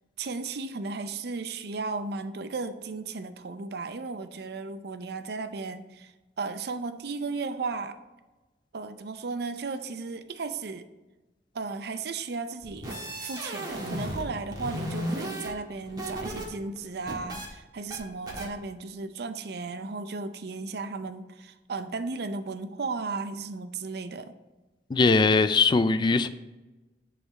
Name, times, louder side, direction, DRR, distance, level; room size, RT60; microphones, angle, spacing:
voice 1, 0.2-8.0 8.7-10.9 11.5-12.9 13.2-24.3, right 4 dB, 65° right, 10 dB, 0.5 m, -35 dB
sound 1, 12.6-14.3 14.5-16.5 16.8-17.5 17.9-18.0 18.3-18.5, right 1 dB, 25° right, 1.5 m, -34 dB
voice 2, 24.9-26.3, left 4 dB, 25° left, 13 dB, 0.3 m, -21 dB
10.0 x 3.9 x 4.1 m, 1.1 s
head